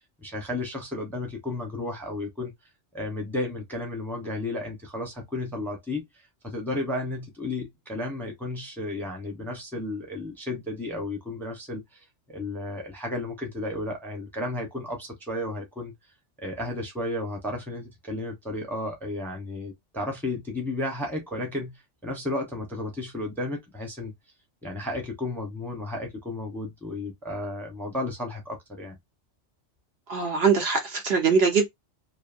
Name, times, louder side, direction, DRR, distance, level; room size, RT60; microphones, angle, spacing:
voice 1, 0.0-2.5 2.9-6.1 6.4-12.0 12.3-15.9 16.4-24.1 24.6-29.0, left 2 dB, ahead, 0.8 m, -33 dB
voice 2, 30.1-31.7, right 5 dB, 60° right, 1.1 m, -22 dB
2.7 x 2.7 x 2.5 m
omnidirectional pair, 1.3 m